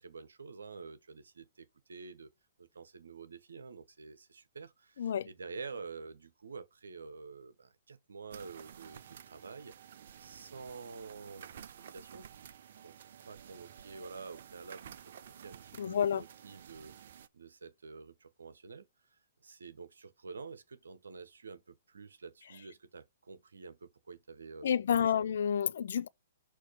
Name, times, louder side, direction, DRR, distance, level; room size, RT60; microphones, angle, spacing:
voice 1, 0.0-2.3 2.6-9.7 10.2-12.4 12.8-12.9 13.3-14.8 15.3-18.9 19.4-24.7 25.0-25.3, right 4 dB, 75° right, 1.0 m, -48 dB
sound 1, 8.3-17.3, right 9 dB, 55° right, 0.5 m, -52 dB
voice 2, 15.8-16.2 24.6-26.1, left 8 dB, 60° left, 0.4 m, -29 dB
6.3 x 2.8 x 5.4 m
figure-of-eight pair, 120°, 0 cm